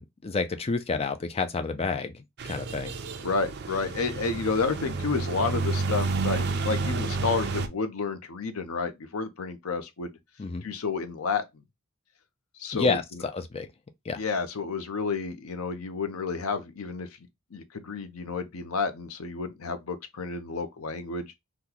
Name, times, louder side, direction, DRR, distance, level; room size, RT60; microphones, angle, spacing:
voice 1, 0.0-2.9 10.4-10.6 12.7-13.7 14.1-14.2, left 4 dB, 25° left, 0.4 m, -29 dB
sound 1, 2.4-7.7, right 3 dB, 50° right, 0.5 m, -30 dB
voice 2, 3.2-10.1 10.6-11.4 12.6-13.3 14.2-17.1 17.5-21.4, left 4 dB, 70° left, 0.6 m, -30 dB
2.9 x 2.2 x 3.7 m
head